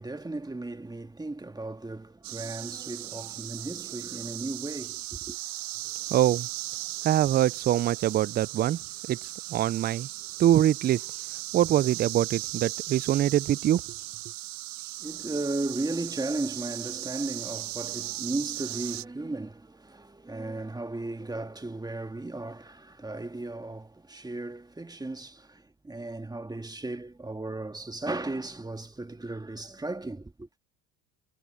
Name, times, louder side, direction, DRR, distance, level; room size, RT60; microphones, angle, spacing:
voice 1, 0.0-5.4 15.0-30.5, right 2 dB, 10° right, 1.7 m, -35 dB
sound 1, 2.2-19.0, right 17 dB, 55° right, 1.2 m, -37 dB
voice 2, 6.1-6.5 7.0-8.8 9.1-10.1 10.4-11.1 11.5-13.8, right 12 dB, 25° right, 0.3 m, -24 dB
supercardioid pair, 95°, 40 cm